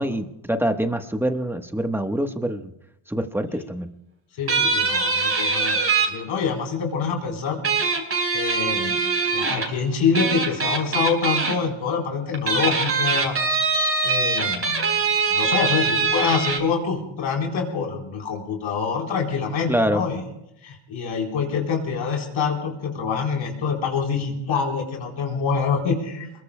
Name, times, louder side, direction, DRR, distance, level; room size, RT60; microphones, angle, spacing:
voice 1, 0.0-2.7 3.1-3.9 19.7-20.0, right 1 dB, 5° right, 7 dB, 1.1 m, -25 dB
voice 2, 4.4-8.0 8.3-9.0 9.3-13.4 13.7-13.8 14.0-20.2 20.6-26.3, left 5 dB, 65° left, 0 dB, 4.1 m, -26 dB
sound 1, 4.5-6.1 7.6-9.7 10.1-11.5 12.3-16.6, right 4 dB, 30° right, 3.7 m, -22 dB
27.5 x 21.5 x 2.2 m, 0.84 s
cardioid pair, 115°, 49 cm